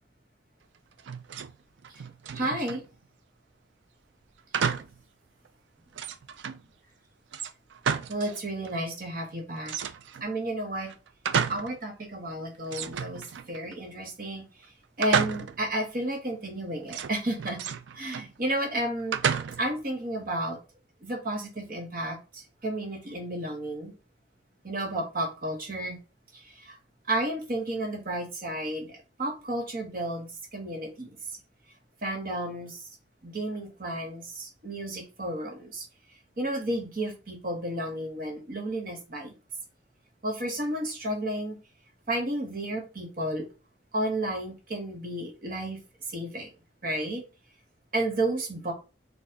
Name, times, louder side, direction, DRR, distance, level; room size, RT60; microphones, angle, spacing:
sound 1, 1.0-1.6 1.8-2.9 4.5-5.0 5.4-5.5 5.9-6.6 7.3-8.4 8.6-8.7 9.7-10.3 10.8-11.8 12.1-12.2 12.7-13.8 15.0-15.7 16.9-18.3 19.1-19.8, right 7 dB, 85° right, 0.4 m, -31 dB
voice 1, 2.3-2.8 8.1-9.7 10.2-10.9 11.5-14.4 15.0-17.6 17.9-19.2 19.6-20.6 21.0-23.9 24.6-26.0 26.3-26.8 27.1-31.2 32.0-32.8 33.2-35.9 36.4-39.3 40.2-41.6 42.1-43.5 43.9-45.8 46.1-46.5 46.8-47.2 47.9-48.7, right 1 dB, 50° right, 2 dB, 1.2 m, -32 dB
4.2 x 3.3 x 3.8 m, 0.32 s
head